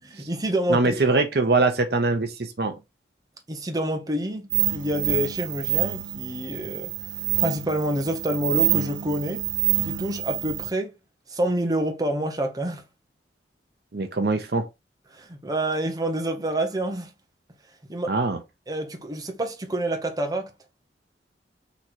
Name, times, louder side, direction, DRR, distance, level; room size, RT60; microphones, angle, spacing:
voice 1, 0.1-1.0 3.5-6.9 7.4-9.4 9.8-10.9 11.3-12.8 15.1-17.1 17.9-18.1 18.7-20.5, right 1 dB, 20° right, 0.8 m, -27 dB
voice 2, 0.7-2.7 13.9-14.7 18.1-18.4, right 3 dB, 55° right, 0.7 m, -23 dB
sound 1, 4.5-10.7, right 15 dB, 85° right, 0.4 m, -27 dB
4.0 x 3.1 x 4.4 m
head